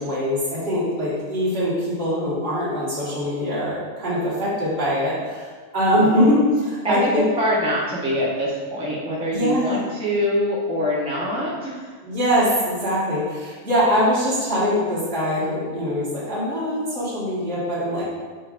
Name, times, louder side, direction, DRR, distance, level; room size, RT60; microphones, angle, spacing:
voice 1, 0.0-5.5 5.7-7.2 9.3-9.8 12.0-18.1, equal, 45° right, -9 dB, 1.6 m, -22 dB
voice 2, 6.8-11.9, equal, 10° right, -6 dB, 0.4 m, -24 dB
5.3 x 3.3 x 2.5 m, 1.5 s
omnidirectional pair, 1.4 m